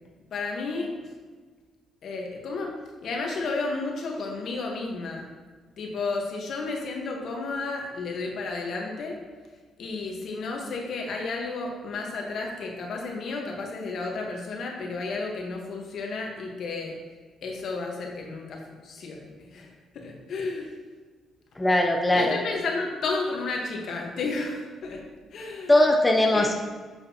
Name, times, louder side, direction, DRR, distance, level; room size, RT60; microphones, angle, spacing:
voice 1, 0.3-1.1 2.0-2.7 3.0-5.3 5.8-9.2 9.8-17.0 17.4-20.7 22.1-25.0 25.3-25.9 26.3-26.5, left 3 dB, 65° left, 0 dB, 1.4 m, -32 dB
voice 2, 21.6-22.4 25.7-26.6, left 1 dB, 10° left, 2 dB, 0.6 m, -20 dB
7.4 x 6.4 x 2.9 m, 1.4 s
cardioid pair, 90°, 0 cm